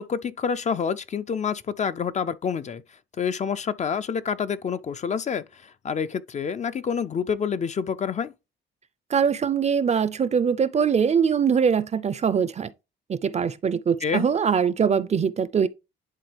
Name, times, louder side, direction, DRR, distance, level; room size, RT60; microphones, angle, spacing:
voice 1, 0.0-2.8 3.2-8.3 14.0-14.3, left 6 dB, 35° left, 0.4 m, -28 dB
voice 2, 9.1-12.7 13.1-15.7, right 7 dB, 35° right, 0.5 m, -22 dB
10.5 x 3.7 x 3.3 m
cardioid pair, 90°, 20 cm